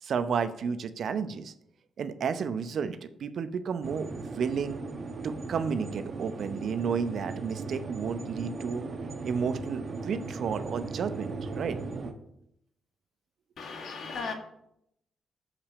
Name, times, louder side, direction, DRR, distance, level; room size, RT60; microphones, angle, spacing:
voice 1, 0.0-1.5 2.0-4.8 5.2-8.8 9.2-11.8, right 6 dB, 65° right, 11 dB, 0.6 m, -32 dB
sound 1, 3.8-12.1, right 4 dB, 50° right, 1.1 m, -38 dB
voice 2, 13.6-14.3, left 4 dB, 65° left, 4 dB, 1.6 m, -36 dB
6.8 x 5.7 x 6.7 m, 0.76 s
hypercardioid pair, 45°, 0 cm